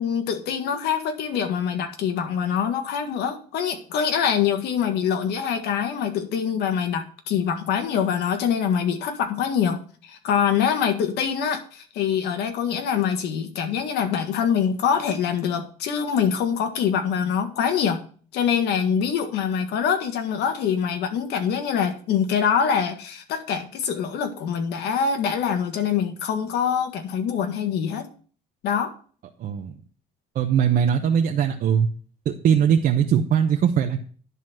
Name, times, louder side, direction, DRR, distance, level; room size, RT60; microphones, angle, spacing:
voice 1, 0.0-18.0 18.3-28.1 28.6-28.9, left 7 dB, 80° left, 6 dB, 1.7 m, -24 dB
voice 2, 29.4-29.7 30.3-31.9 32.2-34.0, right 8 dB, 60° right, 3 dB, 1.0 m, -20 dB
11.0 x 4.1 x 7.7 m, 0.43 s
cardioid pair, 110°, 17 cm